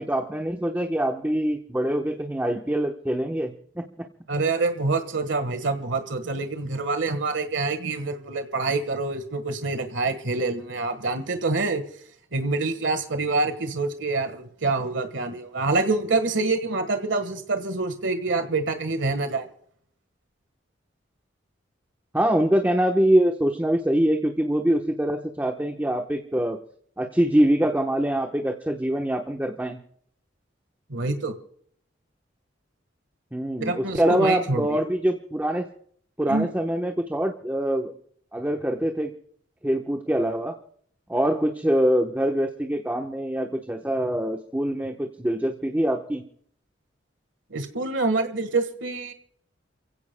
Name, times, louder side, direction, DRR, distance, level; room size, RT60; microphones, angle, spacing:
voice 1, 0.0-4.1 22.1-26.6 27.0-29.8 33.3-35.7 36.2-37.9 38.3-39.1 39.6-40.6 41.1-46.2, right 1 dB, 10° right, 3 dB, 1.0 m, -24 dB
voice 2, 4.3-11.8 12.3-19.5 30.9-31.3 33.6-34.8 36.3-36.5 47.5-49.1, right 3 dB, 80° right, 8 dB, 1.5 m, -26 dB
29.0 x 16.0 x 2.2 m, 0.62 s
head